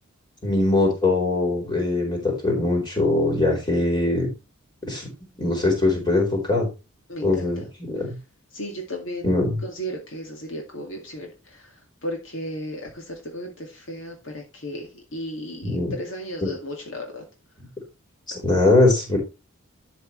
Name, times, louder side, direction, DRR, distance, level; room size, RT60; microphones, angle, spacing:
voice 1, 0.4-4.3 4.8-5.1 5.4-6.7 7.2-8.2 9.2-9.6 15.6-15.9 16.4-16.5 18.4-19.2, left 2 dB, 20° left, 0 dB, 4.3 m, -21 dB
voice 2, 7.1-7.6 8.5-9.3 9.6-11.6 12.0-17.2, equal, 65° left, 2 dB, 2.2 m, -34 dB
11.5 x 6.4 x 3.2 m, 0.29 s
head